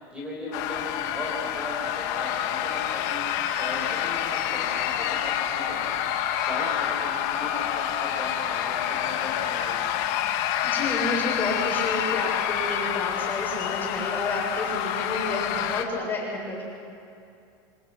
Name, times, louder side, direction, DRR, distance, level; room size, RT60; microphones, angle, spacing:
voice 1, 0.1-6.0 6.3-9.8, left 1 dB, 10° right, -3 dB, 5.4 m, -37 dB
sound 1, 0.5-15.8, left 10 dB, 55° left, 1.9 m, -28 dB
voice 2, 10.6-16.6, left 2 dB, 15° left, -2 dB, 7.4 m, -30 dB
28.0 x 26.0 x 6.3 m, 2.6 s
supercardioid pair, 165°, 12 cm